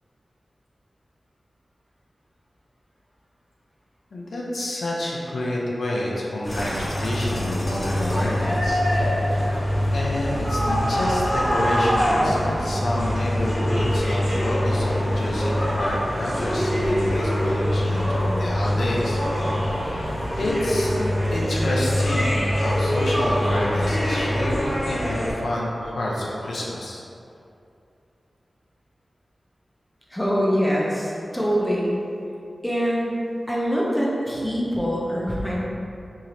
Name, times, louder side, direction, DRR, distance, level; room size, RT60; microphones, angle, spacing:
voice 1, 4.1-8.8 9.1-9.4 9.9-20.9 21.3-27.0, left 1 dB, 85° left, -4 dB, 0.6 m, -28 dB
sound 1, 6.4-25.3, equal, 25° left, 1.2 m, -23 dB
voice 2, 30.1-31.9 32.6-33.2 33.5-35.6, equal, 10° left, -5 dB, 0.7 m, -24 dB
4.7 x 2.7 x 2.9 m, 2.7 s
wide cardioid pair, 75°, 0 cm